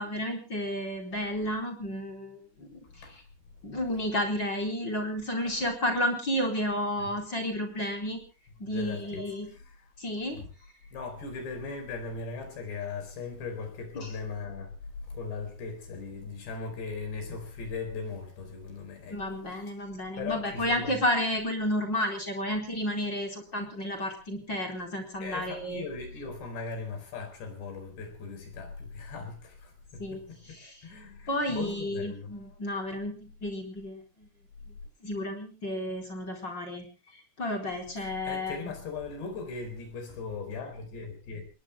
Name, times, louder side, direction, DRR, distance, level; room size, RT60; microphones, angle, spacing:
voice 1, 0.0-3.2 3.6-8.2 8.6-9.5 10.0-10.4 13.9-14.1 19.1-25.9 30.0-30.8 31.3-34.3 35.0-36.9 37.1-38.7, equal, 20° left, 4.3 m, -32 dB
voice 2, 8.7-9.2 9.5-9.8 10.3-10.5 10.9-14.7 15.1-19.2 20.2-21.0 25.2-30.6 30.8-32.5 38.0-41.5, left 4 dB, 55° left, 6.5 m, -38 dB
28.5 x 21.0 x 2.2 m
omnidirectional pair, 5.9 m